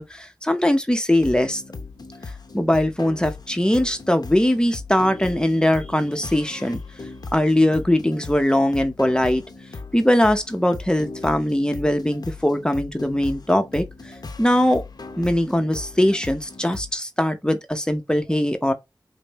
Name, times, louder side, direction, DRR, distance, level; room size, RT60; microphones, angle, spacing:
voice 1, 0.0-1.6 2.5-6.8 7.3-9.4 9.9-13.9 14.4-14.8 15.2-18.7, left 1 dB, 10° left, 0.7 m, -21 dB
sound 1, 1.2-16.9, left 3 dB, 60° left, 0.7 m, -38 dB
5.1 x 2.1 x 3.0 m
cardioid pair, 45°, 8 cm